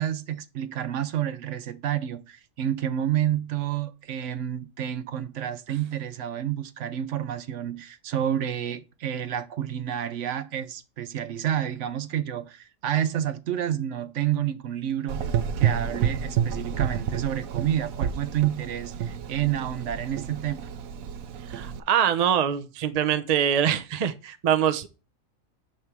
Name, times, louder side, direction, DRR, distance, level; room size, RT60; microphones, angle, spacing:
voice 1, 0.0-15.3 15.6-20.7, right 10 dB, 65° right, 0.9 m, -29 dB
Gurgling / Engine, 15.1-21.8, right 8 dB, 90° right, 1.1 m, -29 dB
voice 2, 21.5-24.9, right 9 dB, 45° right, 0.5 m, -24 dB
9.7 x 3.3 x 5.9 m
omnidirectional pair, 1.4 m